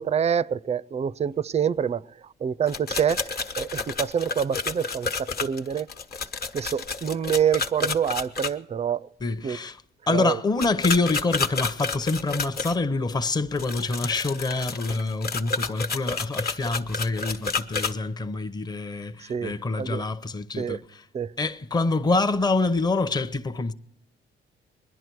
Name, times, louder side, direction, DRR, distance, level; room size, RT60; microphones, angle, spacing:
voice 1, 0.0-5.9 6.5-9.1 9.4-9.6 10.1-10.4 19.2-20.0 20.6-20.8 21.1-21.3, right 8 dB, 35° right, 0.4 m, -27 dB
sound 1, 2.7-8.5 10.6-12.8 13.6-17.9, left 4 dB, 50° left, 1.1 m, -30 dB
voice 2, 9.2-9.8 10.1-20.8 21.4-23.7, left 3 dB, 20° left, 0.7 m, -26 dB
21.5 x 11.0 x 4.6 m
cardioid pair, 90°, 20 cm